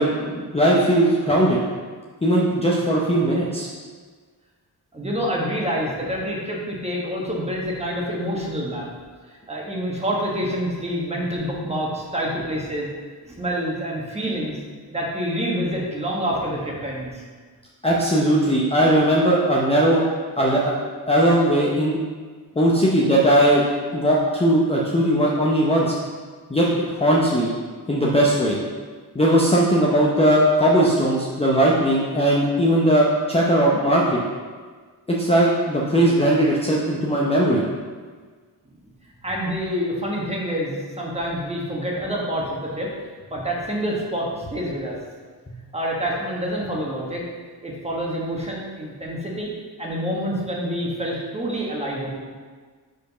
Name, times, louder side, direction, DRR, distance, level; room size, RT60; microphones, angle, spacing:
voice 1, 0.0-1.6 2.2-3.7 17.8-20.0 20.4-20.8 21.1-22.0 22.6-23.6 23.9-25.9 26.5-27.5 27.9-28.6 29.1-34.2 35.1-37.6, right 1 dB, 15° left, -5 dB, 0.6 m, -19 dB
voice 2, 4.9-8.9 9.5-12.9 13.3-14.6 14.9-17.2 39.2-42.9 43.3-45.0 45.7-47.2 47.6-49.5 49.8-52.2, equal, 15° right, -3 dB, 1.2 m, -27 dB
5.1 x 4.5 x 5.5 m, 1.5 s
wide cardioid pair, 150°, 39 cm